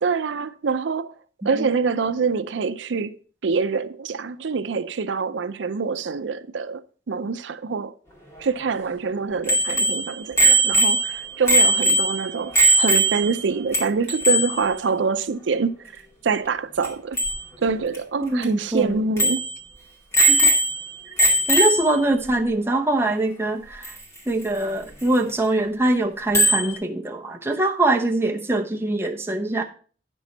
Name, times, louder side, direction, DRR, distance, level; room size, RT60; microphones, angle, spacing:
voice 1, 0.0-1.1 1.4-3.2 3.4-6.8 7.1-7.9 8.4-15.7 16.2-17.2 17.6-19.4, right 5 dB, 80° right, 0.5 m, -25 dB
Bicycle bell, 9.5-13.4 13.7-13.8 14.1-14.6 16.8-16.9 17.2-17.4 17.9-18.0 18.4-18.5 19.2-19.5 20.1-20.9 21.2-22.0 23.8-23.9 26.3-26.7, right 1 dB, 15° left, 2.2 m, -19 dB
voice 2, 18.2-19.0 20.3-20.5 21.5-24.0 24.3-29.6, right 2 dB, 15° right, 0.9 m, -23 dB
9.8 x 6.2 x 4.0 m
head